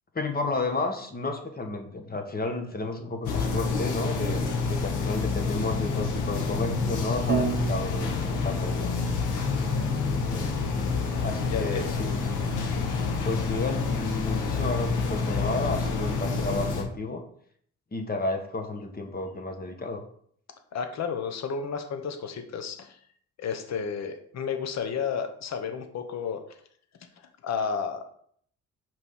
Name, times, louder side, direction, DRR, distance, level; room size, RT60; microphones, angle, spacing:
voice 1, 0.1-9.0 11.2-12.1 13.2-17.2 17.9-20.0, left 2 dB, 30° left, 4 dB, 1.7 m, -32 dB
sound 1, 3.2-16.8, left 4 dB, 80° left, 1.8 m, -28 dB
Piano, 7.3-9.5, right 6 dB, 35° right, 0.9 m, -32 dB
voice 2, 11.5-12.0 20.7-23.0 23.4-26.4 27.4-28.0, left 6 dB, 60° left, 7 dB, 1.2 m, -32 dB
5.9 x 5.2 x 5.6 m, 0.62 s
cardioid pair, 90°, 30 cm